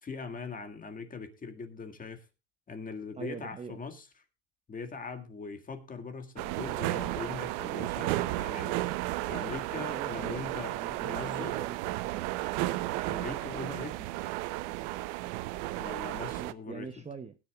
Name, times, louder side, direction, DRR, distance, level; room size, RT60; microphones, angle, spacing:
voice 1, 0.0-2.3 2.7-4.1 4.7-8.9 9.3-11.5 13.1-14.1 15.8-16.9, left 4 dB, 25° left, 7 dB, 1.9 m, -41 dB
voice 2, 3.1-3.8 9.7-12.3 16.4-17.4, right 6 dB, 20° right, 8 dB, 0.8 m, -44 dB
sound 1, 6.4-16.5, right 17 dB, 80° right, 0.8 m, -33 dB
20.5 x 10.0 x 2.4 m, 0.26 s
supercardioid pair, 120°, 35 cm